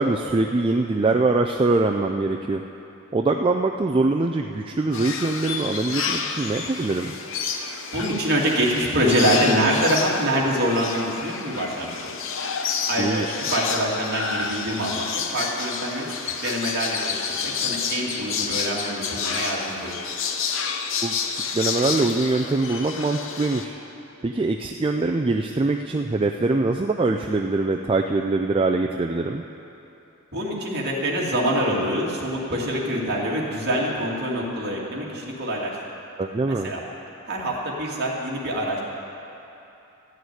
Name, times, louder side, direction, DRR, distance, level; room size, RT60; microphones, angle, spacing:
voice 1, 0.0-2.6 3.1-7.1 13.0-13.3 21.0-23.8 24.2-29.4 36.2-36.7, right 3 dB, 25° right, 3 dB, 0.3 m, -23 dB
sound 1, 4.9-23.7, left 6 dB, 60° left, 0.8 m, -29 dB
voice 2, 7.9-12.1 12.9-13.2 13.5-17.2 17.4-20.0 30.3-35.8 36.5-36.8 37.3-38.8, equal, 50° right, -4 dB, 2.2 m, -25 dB
14.0 x 6.6 x 9.4 m, 2.9 s
head